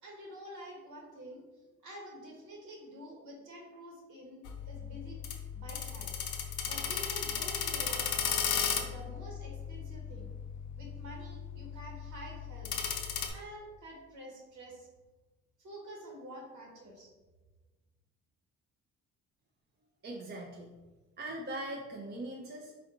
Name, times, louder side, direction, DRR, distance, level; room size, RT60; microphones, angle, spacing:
voice 1, 0.0-1.4 1.8-5.2 5.5-6.2 6.6-10.3 10.8-12.7 13.3-14.9 15.6-17.1, equal, 80° right, -1 dB, 1.4 m, -48 dB
sound 1, 4.5-13.3, left 7 dB, 85° left, 0.6 m, -36 dB
voice 2, 20.0-20.7 21.2-22.7, right 1 dB, 35° right, 0 dB, 0.6 m, -40 dB
4.3 x 2.6 x 3.8 m, 1.2 s
cardioid pair, 90°, 30 cm